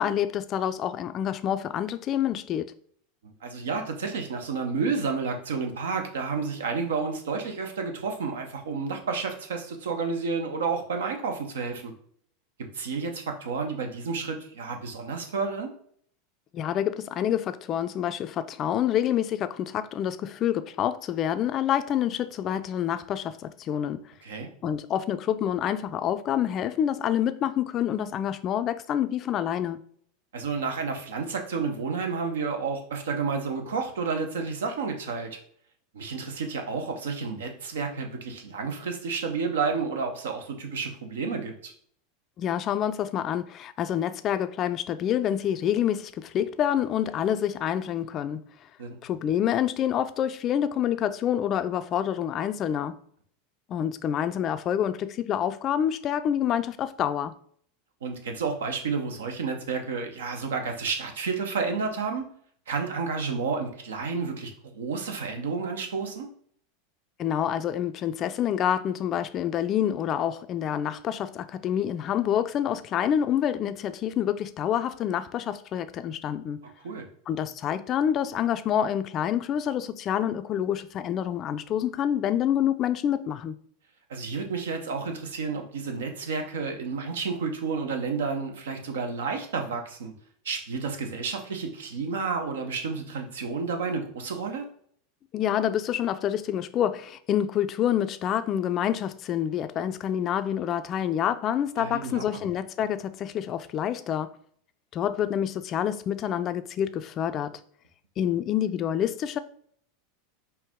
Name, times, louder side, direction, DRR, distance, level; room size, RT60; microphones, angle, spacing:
voice 1, 0.0-2.7 16.5-24.0 24.6-29.8 42.4-48.4 49.0-53.0 53.7-57.3 67.2-76.6 77.3-83.6 95.3-104.3 104.9-107.5 108.2-109.4, left 10 dB, 40° left, 0.3 m, -27 dB
voice 2, 3.2-11.9 12.7-15.7 24.2-24.5 30.3-35.4 35.9-41.7 48.8-49.0 58.0-62.2 62.7-66.3 76.8-77.1 84.1-90.1 90.4-94.7 101.7-102.4, right 5 dB, 75° right, 0.8 m, -31 dB
4.6 x 2.6 x 3.5 m
hypercardioid pair, 90°, 0 cm